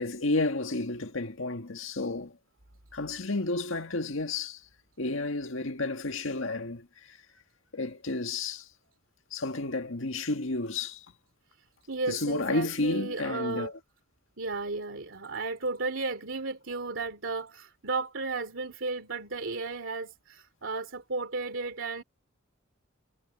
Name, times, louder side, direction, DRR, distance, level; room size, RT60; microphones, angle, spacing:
voice 1, 0.0-2.3 2.9-4.6 5.0-7.2 7.7-8.7 9.3-11.0 12.1-13.7, left 2 dB, 80° left, 1.8 m, -31 dB
voice 2, 11.9-13.7 14.4-22.0, right 3 dB, 70° right, 2.7 m, -34 dB
head